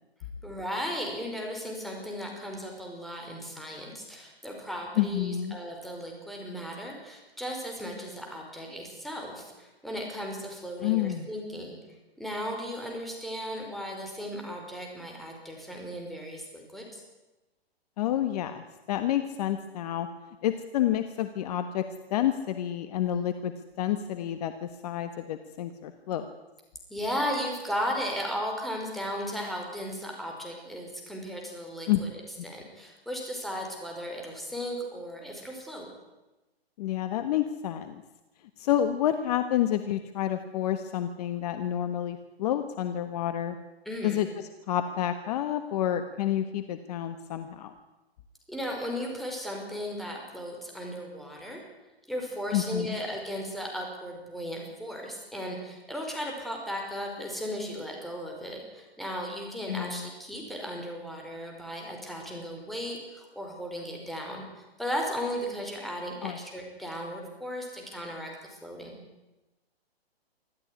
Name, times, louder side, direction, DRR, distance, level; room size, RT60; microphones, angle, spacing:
voice 1, 0.4-11.8 12.2-17.0 26.9-32.1 32.4-35.9 43.8-44.2 48.5-51.6 52.1-69.0, equal, ahead, 0 dB, 5.1 m, -36 dB
voice 2, 5.0-5.6 10.8-11.3 18.0-20.1 20.4-23.5 23.8-26.3 31.9-32.0 36.8-38.0 38.6-43.6 44.0-44.3 44.7-47.7 52.5-53.0 59.7-60.1 66.2-66.4, left 11 dB, 40° left, 9 dB, 1.4 m, -29 dB
25.0 x 14.5 x 9.8 m, 1.1 s
hypercardioid pair, 140°, 31 cm